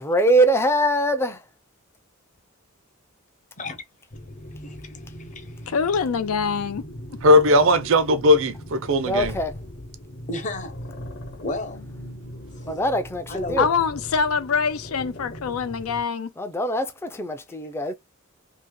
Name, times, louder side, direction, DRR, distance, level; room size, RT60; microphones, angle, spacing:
voice 1, 0.0-1.4 9.0-9.5 12.7-13.7 16.4-17.9, right 1 dB, 10° left, 0.4 m, -22 dB
sound 1, 4.1-16.0, equal, 55° left, 1.0 m, -39 dB
voice 2, 4.6-5.7 10.3-10.7 11.4-11.8 12.6-12.8 13.3-13.6, left 2 dB, 35° left, 0.8 m, -33 dB
voice 3, 5.7-6.8 13.6-16.3, left 6 dB, 85° left, 0.4 m, -24 dB
voice 4, 7.2-9.3, left 1 dB, 65° right, 0.5 m, -18 dB
2.8 x 2.7 x 3.6 m
head